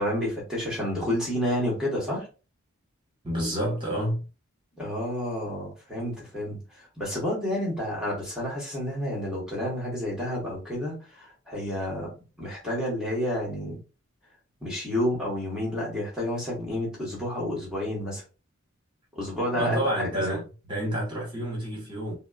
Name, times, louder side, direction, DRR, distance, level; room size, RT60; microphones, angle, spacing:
voice 1, 0.0-2.3 4.8-12.1 12.4-13.8 14.6-18.2 19.1-20.1 20.3-20.4, left 1 dB, 5° right, 1.2 m, -30 dB
voice 2, 3.2-4.3 19.5-22.2, equal, 20° right, 1.3 m, -29 dB
4.1 x 2.0 x 2.3 m
head